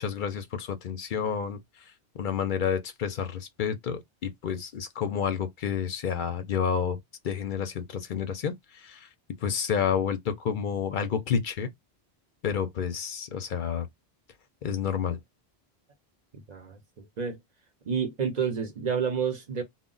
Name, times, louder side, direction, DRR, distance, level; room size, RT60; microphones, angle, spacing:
voice 1, 0.0-7.0 7.2-9.1 9.4-11.7 12.4-13.9 14.6-15.2, left 7 dB, 60° left, 0.6 m, -30 dB
voice 2, 17.9-19.6, right 6 dB, 50° right, 0.6 m, -29 dB
2.1 x 2.1 x 3.7 m
omnidirectional pair, 1.1 m